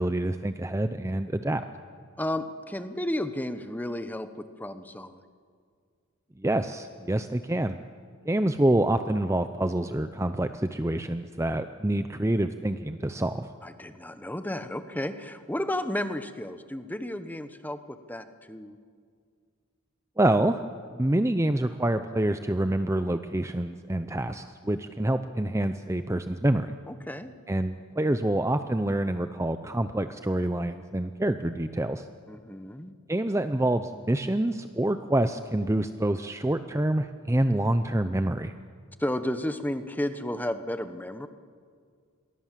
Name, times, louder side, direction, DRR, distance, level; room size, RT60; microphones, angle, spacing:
voice 1, 0.0-1.6 6.4-7.8 8.3-13.5 20.2-20.6 20.9-26.7 27.5-32.1 33.1-38.5, right 1 dB, 15° right, 9 dB, 0.6 m, -27 dB
voice 2, 2.2-5.2 13.6-18.8 26.9-27.3 32.3-32.9 39.0-41.3, left 1 dB, 10° left, 10 dB, 0.9 m, -33 dB
28.0 x 22.5 x 7.5 m, 2.1 s
head